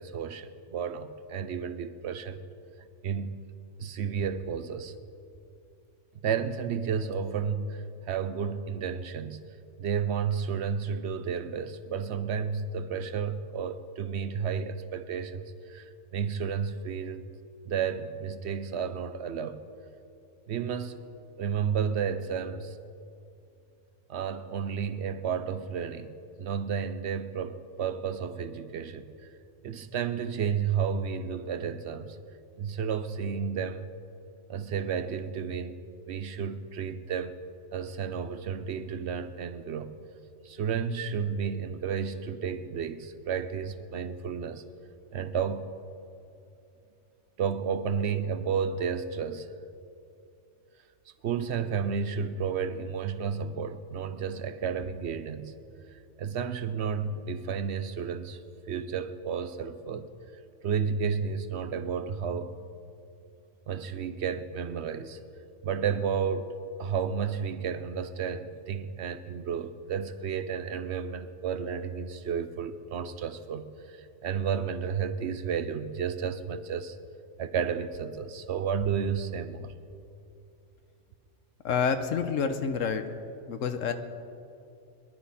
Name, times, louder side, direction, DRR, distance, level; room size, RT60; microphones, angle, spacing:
voice 1, 0.0-2.4 3.0-3.4 3.8-4.9 6.2-9.4 9.8-15.8 16.1-17.2 17.7-19.6 20.5-21.0 21.4-22.7 24.1-29.1 29.6-32.2 32.6-33.9 34.5-35.8 36.1-37.4 37.7-40.0 40.4-44.6 45.1-45.7 47.4-49.5 51.2-55.6 56.2-58.4 58.7-60.1 60.6-62.6 63.7-65.2 65.6-66.5 66.8-77.0 77.4-79.7, right 6 dB, 65° right, 1.0 m, -32 dB
voice 2, 81.6-83.2 83.5-83.9, left 6 dB, 85° left, 1.2 m, -28 dB
23.0 x 11.5 x 4.2 m
omnidirectional pair, 1.3 m